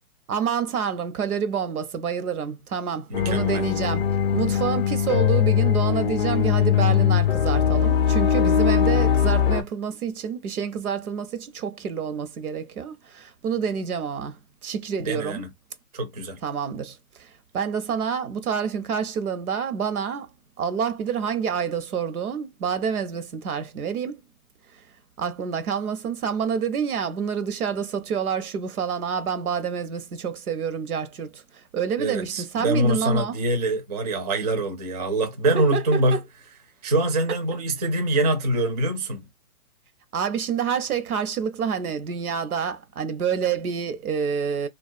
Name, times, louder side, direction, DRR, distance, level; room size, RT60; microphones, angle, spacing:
voice 1, 0.3-4.0 4.3-15.4 16.4-20.3 20.6-24.2 25.2-33.4 35.5-36.2 40.1-44.7, right 7 dB, 80° right, 0.7 m, -28 dB
sound 1, 3.1-9.6, left 8 dB, 40° left, 0.4 m, -21 dB
voice 2, 3.1-3.6 15.0-15.5 15.9-16.4 32.0-36.2 36.8-39.3, right 1 dB, 30° right, 0.4 m, -24 dB
2.3 x 2.2 x 2.5 m
hypercardioid pair, 145°, 44 cm